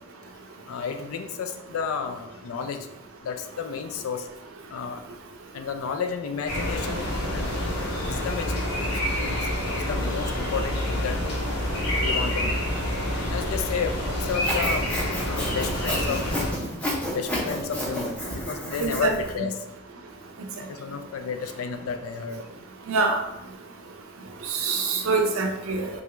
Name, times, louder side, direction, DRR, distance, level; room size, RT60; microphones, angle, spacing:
voice 1, 0.7-2.9 3.2-4.3 4.7-5.0 5.5-7.1 7.3-7.6 8.0-9.5 9.7-11.2 12.0-12.6 13.3-15.0 15.3-16.2 17.1-19.5 20.6-22.4, left 6 dB, 70° left, 7 dB, 0.3 m, -32 dB
sound 1, 6.5-16.5, left 1 dB, 85° left, 0.9 m, -27 dB
Sawing, 14.3-19.3, left 1 dB, 5° left, 0.6 m, -31 dB
voice 2, 18.8-19.1 22.9-23.2 24.5-25.9, right 4 dB, 65° right, 3 dB, 0.5 m, -24 dB
3.3 x 2.3 x 2.9 m, 0.87 s
head